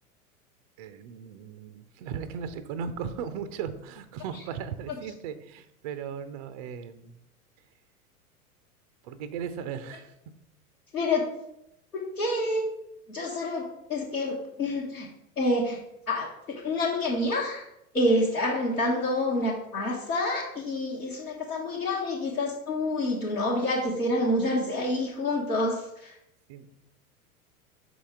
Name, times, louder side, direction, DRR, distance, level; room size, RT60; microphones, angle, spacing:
voice 1, 0.8-7.2 9.0-10.1 26.5-26.7, right 7 dB, 30° right, 12 dB, 0.4 m, -37 dB
voice 2, 10.9-11.3 11.9-12.6 13.1-15.1 15.4-15.8 16.1-17.6 17.9-26.2, left 1 dB, 80° left, -5 dB, 1.4 m, -28 dB
6.1 x 5.4 x 3.5 m, 0.81 s
figure-of-eight pair, 90°, 43 cm